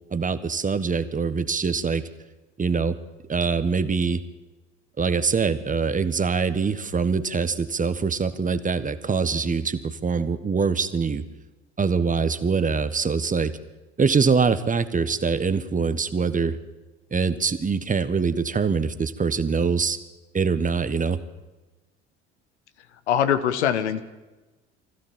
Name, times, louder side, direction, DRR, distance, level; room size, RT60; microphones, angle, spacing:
voice 1, 0.1-2.0 2.6-3.0 3.3-4.2 5.0-11.2 11.8-13.5 14.0-16.6 17.1-20.0 20.3-21.2, right 5 dB, 20° right, 12 dB, 1.4 m, -24 dB
voice 2, 23.1-24.0, left 9 dB, 75° left, 11 dB, 1.3 m, -22 dB
24.5 x 15.5 x 7.3 m, 1.1 s
figure-of-eight pair, 60°, 35 cm